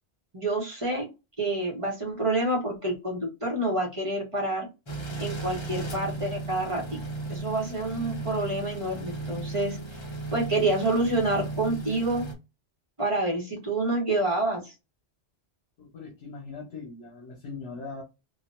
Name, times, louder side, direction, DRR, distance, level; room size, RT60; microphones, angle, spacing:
voice 1, 0.3-1.1 1.4-4.7 5.2-7.0 7.3-9.8 10.3-12.2 13.0-14.7, right 2 dB, 30° right, 1.1 m, -28 dB
sound 1, 4.9-12.3, right 2 dB, 30° left, 0.7 m, -36 dB
voice 2, 15.8-18.0, left 4 dB, 70° left, 1.2 m, -40 dB
3.8 x 2.4 x 2.5 m
omnidirectional pair, 1.1 m